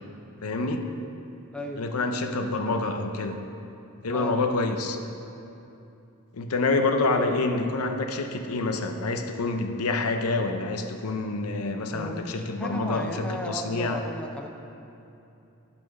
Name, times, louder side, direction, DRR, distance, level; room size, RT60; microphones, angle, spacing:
voice 1, 0.4-1.0 1.8-3.4 4.0-5.0 6.3-14.0, left 3 dB, 85° left, 5 dB, 0.7 m, -27 dB
voice 2, 1.5-1.9 4.1-4.4 11.9-14.5, equal, 5° left, 2 dB, 0.4 m, -35 dB
12.0 x 4.4 x 6.0 m, 2.8 s
head